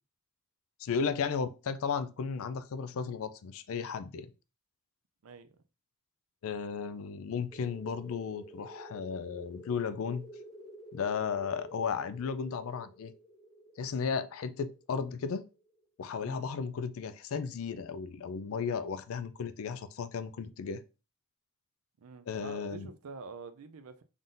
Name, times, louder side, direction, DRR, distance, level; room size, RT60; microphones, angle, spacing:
voice 1, 0.8-4.3 6.4-10.3 10.9-13.1 13.8-15.4 16.0-20.8 22.3-22.9, left 6 dB, 65° left, 0.4 m, -34 dB
voice 2, 5.2-5.6 16.2-16.4 22.0-24.0, right 4 dB, 75° right, 0.5 m, -47 dB
sound 1, 7.5-15.8, right 1 dB, ahead, 0.4 m, -51 dB
3.7 x 3.7 x 2.5 m
head